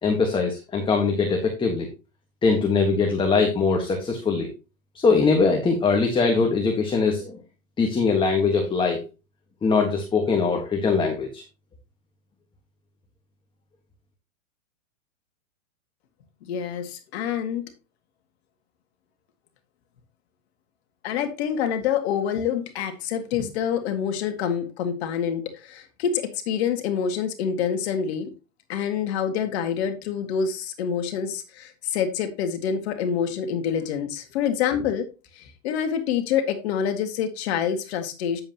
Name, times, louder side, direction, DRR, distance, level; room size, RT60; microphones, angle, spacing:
voice 1, 0.0-1.9 2.4-4.5 4.9-7.4 7.8-9.0 9.6-11.4, left 4 dB, 10° left, 1.5 m, -22 dB
voice 2, 16.4-17.7 21.0-28.3 28.7-35.1 35.3-38.4, left 8 dB, 55° left, 2.0 m, -27 dB
9.8 x 7.8 x 2.9 m
hypercardioid pair, 130°, 39 cm